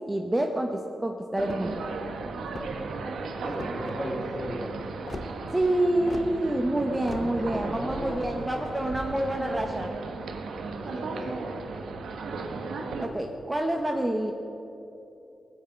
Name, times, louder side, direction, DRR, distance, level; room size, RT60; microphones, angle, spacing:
voice 1, 0.1-0.7 1.0-1.8 5.5-9.9 13.0-14.3, right 1 dB, 15° right, 3 dB, 1.0 m, -27 dB
sound 1, 1.4-1.8 2.4-2.9 3.5-4.0 5.1-5.3 6.1-6.3 7.0-7.3, left 3 dB, 40° left, 1.2 m, -39 dB
sound 2, 1.4-13.1, right 3 dB, 85° right, 1.4 m, -36 dB
voice 2, 3.4-4.9 7.1-7.2 7.5-8.5 10.8-11.4, equal, 20° left, 0 dB, 3.4 m, -36 dB
19.0 x 6.6 x 9.2 m, 2.9 s
cardioid pair, 85°, 0 cm